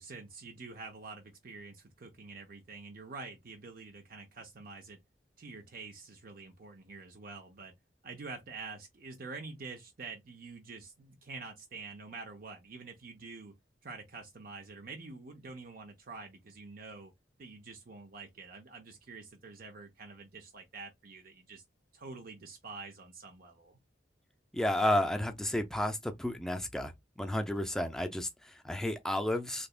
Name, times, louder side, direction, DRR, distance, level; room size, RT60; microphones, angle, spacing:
voice 1, 0.0-5.0 5.4-7.7 8.0-13.6 13.8-17.1 17.4-21.6 21.9-23.8, right 4 dB, 55° right, 0.6 m, -47 dB
voice 2, 24.5-29.7, left 1 dB, 5° left, 0.5 m, -32 dB
3.4 x 2.9 x 2.4 m
head